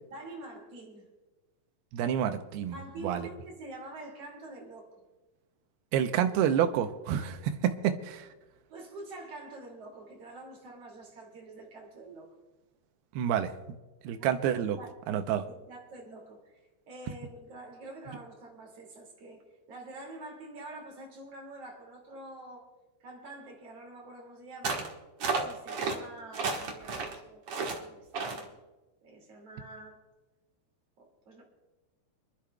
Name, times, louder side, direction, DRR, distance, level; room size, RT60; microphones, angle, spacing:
voice 1, 0.1-1.1 2.7-4.9 7.4-7.5 8.7-12.3 14.2-15.0 15.5-16.6 16.9-19.4 19.7-22.7 23.0-24.8 25.4-28.6 29.0-30.0 31.0-31.4, right 2 dB, 40° right, 0 dB, 3.1 m, -46 dB
voice 2, 1.9-2.8 3.0-3.3 5.9-8.3 13.2-13.5 14.0-14.8 15.1-15.4, right 9 dB, 75° right, 7 dB, 2.6 m, -28 dB
sound 1, 24.6-24.9 25.2-26.0 26.3-27.1 27.5-27.8 28.1-28.4, right 4 dB, 60° right, 1.6 m, -32 dB
28.0 x 12.0 x 2.3 m, 1.1 s
omnidirectional pair, 4.9 m